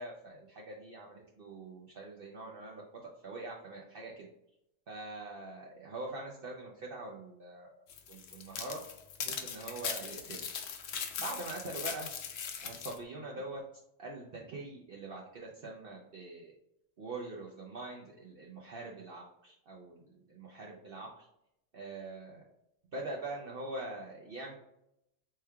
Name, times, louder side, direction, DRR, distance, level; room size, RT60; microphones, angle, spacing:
voice 1, 0.0-2.8 3.2-4.3 4.9-7.7 8.1-8.8 9.2-10.4 11.2-12.1 12.6-13.6 14.0-16.5 17.0-21.3 21.7-22.4 22.9-24.5, right 2 dB, 55° right, -3 dB, 0.7 m, -43 dB
sound 1, 7.9-13.0, left 7 dB, 65° left, 0.7 m, -40 dB
4.3 x 3.2 x 2.3 m, 0.82 s
omnidirectional pair, 1.4 m